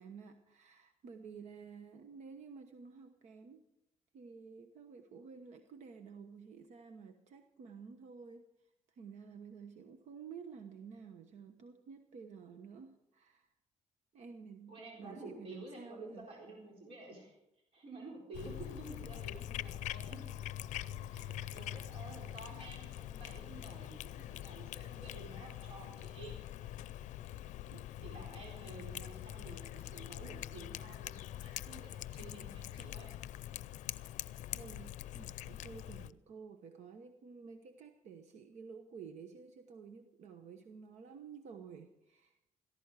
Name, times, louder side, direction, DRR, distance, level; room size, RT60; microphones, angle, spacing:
voice 1, 0.0-3.6 4.1-13.5 14.1-16.3 21.1-21.9 27.7-27.8 34.5-42.4, right 6 dB, 70° right, 7 dB, 1.1 m, -52 dB
voice 2, 14.7-17.4 17.7-20.2 21.0-26.7 28.0-33.1, right 2 dB, 50° right, -2 dB, 4.2 m, -51 dB
Cat, 18.3-36.1, left 13 dB, 80° left, 0.5 m, -44 dB
16.5 x 14.5 x 4.9 m, 0.85 s
cardioid pair, 130°, 12 cm